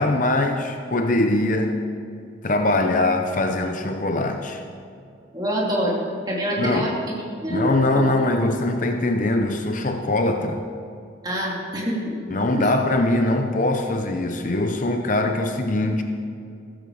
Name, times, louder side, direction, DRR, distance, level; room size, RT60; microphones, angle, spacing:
voice 1, 0.0-1.8 2.4-4.6 6.6-6.9 7.5-10.6 12.3-16.0, left 2 dB, 40° left, 5 dB, 0.8 m, -22 dB
voice 2, 5.3-6.0 6.3-8.1 8.3-8.5 11.2-12.2 12.5-12.7, equal, 20° right, -3 dB, 2.9 m, -26 dB
15.0 x 14.5 x 4.9 m, 2.4 s
head